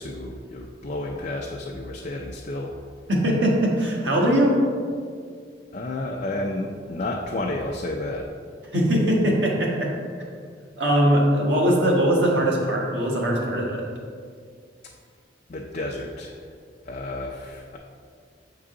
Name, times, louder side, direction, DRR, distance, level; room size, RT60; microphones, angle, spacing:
voice 1, 0.0-2.7 5.7-8.3 15.5-16.5 16.9-17.8, left 2 dB, 40° left, 0 dB, 0.4 m, -31 dB
voice 2, 3.1-4.6 8.7-9.9 10.8-13.8, equal, 85° right, -3 dB, 1.5 m, -21 dB
7.5 x 4.8 x 3.7 m, 2.1 s
head